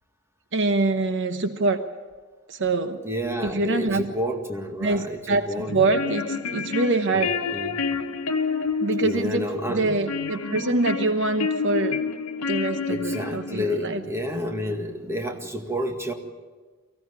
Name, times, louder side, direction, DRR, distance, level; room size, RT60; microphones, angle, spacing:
voice 1, 0.5-1.9 2.5-3.0 3.4-4.1 4.8-7.4 8.8-12.0 12.5-14.0, right 3 dB, 55° right, 8 dB, 1.1 m, -25 dB
voice 2, 3.0-5.9 7.1-7.8 9.0-9.9 12.9-16.1, left 1 dB, 10° right, 3 dB, 2.0 m, -30 dB
sound 1, 5.6-13.7, left 5 dB, 75° left, 1.3 m, -29 dB
24.0 x 16.0 x 9.7 m, 1.4 s
head